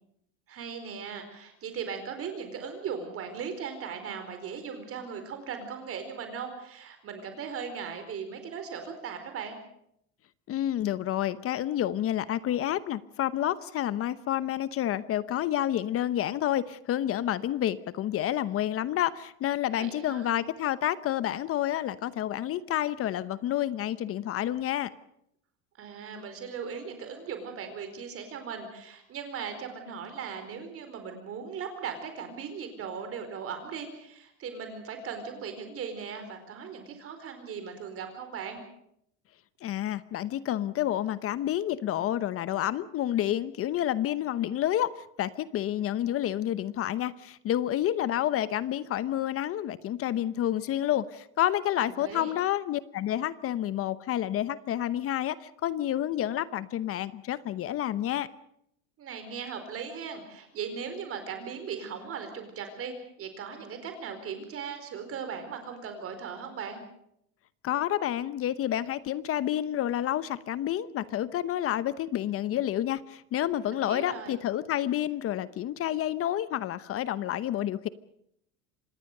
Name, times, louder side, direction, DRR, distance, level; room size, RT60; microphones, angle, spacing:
voice 1, 0.5-9.6 19.8-20.3 25.8-38.6 51.8-52.3 59.0-66.8 73.7-74.4, right 6 dB, 40° right, 7 dB, 4.5 m, -38 dB
voice 2, 10.5-24.9 39.6-44.9 45.2-58.3 67.6-77.9, left 12 dB, 40° left, 16 dB, 0.9 m, -29 dB
26.0 x 19.0 x 6.7 m, 0.74 s
supercardioid pair, 120°, 33 cm